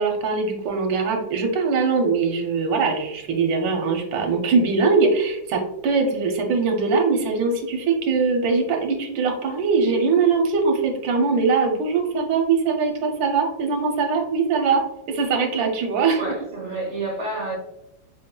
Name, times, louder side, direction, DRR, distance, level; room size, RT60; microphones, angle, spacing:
voice 1, 0.0-14.8 15.1-16.2, right 4 dB, 90° right, 3 dB, 1.4 m, -21 dB
voice 2, 16.2-17.5, right 2 dB, 55° right, -7 dB, 1.7 m, -29 dB
4.0 x 3.7 x 2.2 m, 0.82 s
omnidirectional pair, 2.0 m